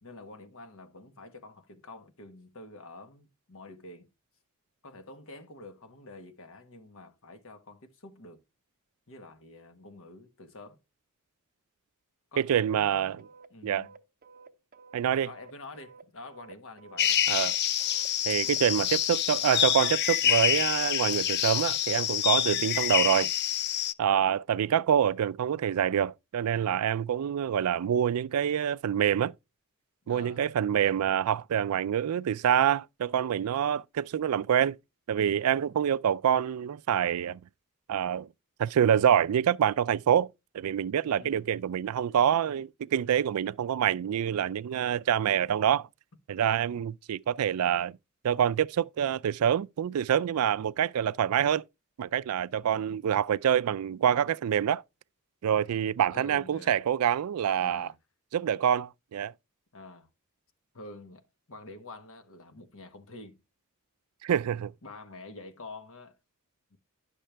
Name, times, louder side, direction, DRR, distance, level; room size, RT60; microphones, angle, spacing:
voice 1, 0.0-4.1 4.8-8.4 9.1-10.8 12.3-14.0 15.2-17.2 24.0-24.4 30.0-30.4 41.1-41.5 43.8-44.0 56.1-56.8 57.6-58.0 59.7-60.1 60.7-61.2 61.5-63.4 64.8-66.2 66.7-66.8, left 2 dB, 65° left, 1.2 m, -48 dB
voice 2, 12.4-13.3 13.6-13.9 14.9-15.3 17.3-17.5 18.3-23.3 24.0-29.3 30.1-34.8 35.1-37.4 37.9-38.3 38.6-40.3 40.5-45.9 46.3-48.0 48.2-51.6 52.0-54.8 55.4-57.9 58.3-59.3 64.2-64.7, right 9 dB, 80° right, 0.3 m, -26 dB
sound 1, 13.2-18.9, right 4 dB, 45° right, 0.7 m, -52 dB
sound 2, 17.0-23.9, left 10 dB, 50° left, 0.4 m, -27 dB
10.5 x 6.5 x 3.3 m
head